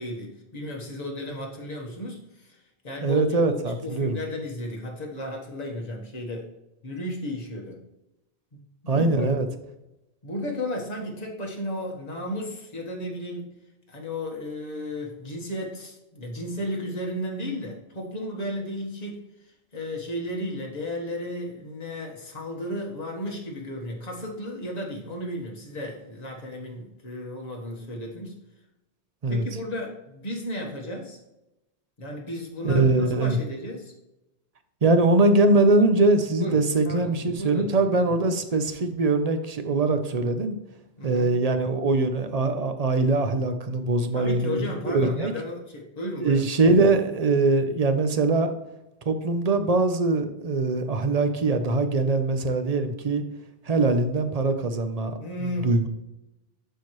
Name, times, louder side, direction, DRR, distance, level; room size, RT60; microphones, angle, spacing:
voice 1, 0.0-6.5 6.8-7.8 8.5-9.3 10.2-13.5 13.9-19.2 19.7-28.4 29.3-31.2 32.0-33.9 36.4-38.1 41.0-41.4 44.1-46.4 55.2-55.9, left 1 dB, 40° left, -1 dB, 1.4 m, -34 dB
voice 2, 3.0-4.2 8.9-9.5 29.2-29.4 32.6-33.4 34.8-40.6 41.0-45.3 46.2-48.5 49.1-53.2 53.7-55.2 55.6-55.8, right 3 dB, 45° right, 8 dB, 0.7 m, -22 dB
12.0 x 4.5 x 3.1 m, 0.93 s
omnidirectional pair, 1.1 m